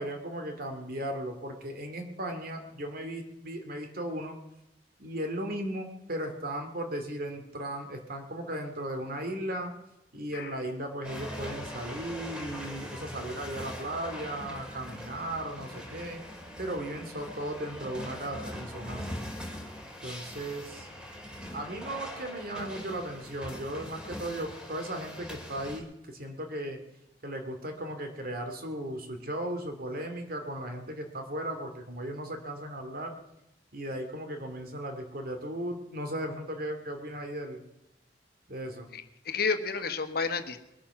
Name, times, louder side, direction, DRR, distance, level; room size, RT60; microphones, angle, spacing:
voice 1, 0.0-4.4 5.0-9.7 10.1-16.2 16.6-19.2 20.0-20.9 21.5-26.8 27.2-33.2 33.7-37.6 38.5-38.9, right 1 dB, 55° right, 5 dB, 2.4 m, -36 dB
sound 1, 11.0-25.8, equal, 5° right, 2.6 m, -42 dB
voice 2, 38.9-40.7, left 5 dB, 60° left, 8 dB, 1.2 m, -31 dB
21.5 x 8.9 x 5.9 m, 0.88 s
head